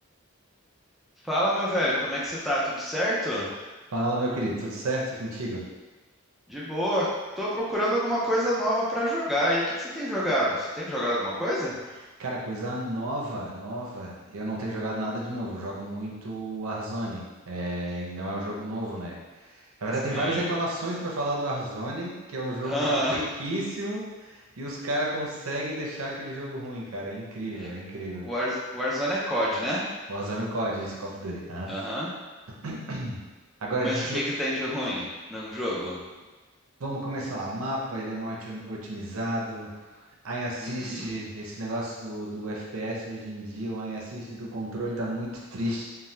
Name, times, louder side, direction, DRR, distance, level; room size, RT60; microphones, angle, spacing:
voice 1, 1.2-3.5 6.5-7.1 7.4-11.8 20.1-20.4 22.6-23.2 27.6-27.7 28.2-29.9 31.7-32.1 33.8-35.0 35.3-36.0 40.6-41.1, equal, ahead, -7 dB, 0.5 m, -27 dB
voice 2, 3.9-5.6 12.2-19.2 19.5-28.3 30.1-31.7 32.6-33.2 33.6-34.2 36.8-39.7 40.2-45.8, right 1 dB, 90° right, -3 dB, 0.6 m, -32 dB
2.7 x 2.2 x 3.2 m, 1.2 s
head